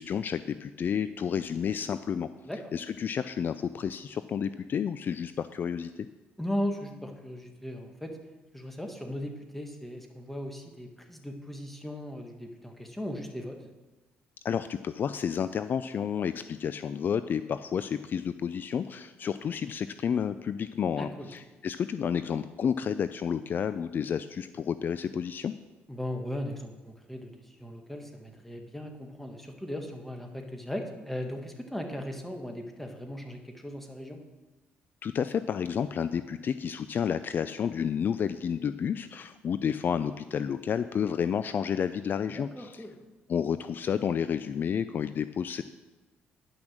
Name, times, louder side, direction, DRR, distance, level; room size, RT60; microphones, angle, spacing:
voice 1, 0.0-2.3 2.7-5.9 14.4-25.5 35.0-42.8 43.3-45.6, left 7 dB, 50° left, 12 dB, 0.3 m, -30 dB
voice 2, 6.4-8.2 8.5-13.6 21.0-21.3 25.9-34.2 42.3-42.9, equal, 5° left, 3 dB, 1.5 m, -37 dB
10.5 x 6.1 x 6.5 m, 1.2 s
cardioid pair, 85°, 4 cm